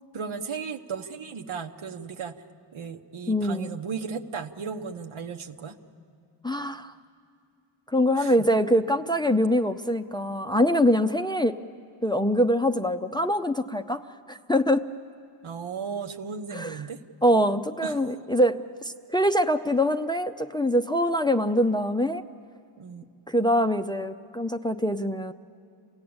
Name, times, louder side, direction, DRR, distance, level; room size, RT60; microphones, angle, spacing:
voice 1, 0.1-2.4 2.7-5.8 8.2-8.4 15.4-17.0 17.8-18.0 22.8-23.0, right 6 dB, 75° right, 5 dB, 1.1 m, -35 dB
voice 2, 3.3-3.8 6.4-6.9 7.9-11.6 12.0-14.8 16.5-16.8 17.2-22.2 23.3-25.3, equal, 10° left, 7 dB, 0.5 m, -24 dB
28.0 x 17.0 x 8.7 m, 2.5 s
wide cardioid pair, 80°, 50 cm